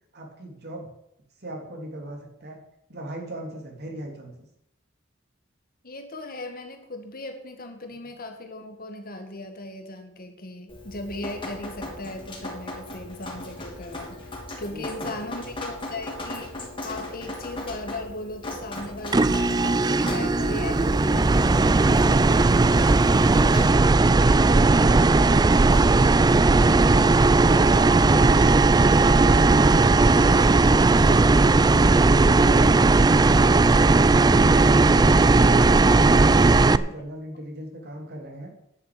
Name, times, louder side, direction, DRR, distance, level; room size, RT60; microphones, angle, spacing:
voice 1, 0.1-0.9 1.4-2.6 2.9-4.3 14.7-15.5 30.3-31.4 35.6-38.5, right 1 dB, 55° right, 2 dB, 3.2 m, -38 dB
voice 2, 5.8-14.3 14.6-22.7, left 2 dB, 50° left, 5 dB, 1.9 m, -38 dB
Drip, 10.7-23.7, left 1 dB, 25° left, 3.4 m, -38 dB
sound 1, 19.1-36.8, right 3 dB, 20° right, 0.4 m, -17 dB
11.0 x 7.2 x 8.6 m, 0.78 s
head